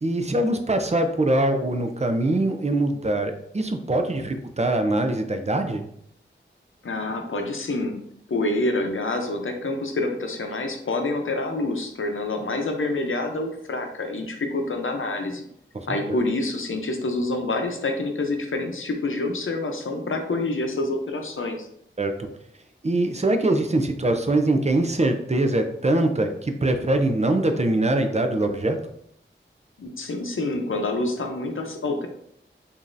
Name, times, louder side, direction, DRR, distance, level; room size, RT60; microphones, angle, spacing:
voice 1, 0.0-5.9 15.7-16.2 22.0-22.3 22.8-28.8, right 2 dB, 35° right, 6 dB, 0.5 m, -23 dB
voice 2, 6.8-8.0 8.3-15.5 15.9-21.7 29.8-32.1, left 2 dB, 80° left, 3 dB, 0.6 m, -27 dB
5.0 x 2.7 x 2.5 m, 0.70 s
wide cardioid pair, 65°, 20 cm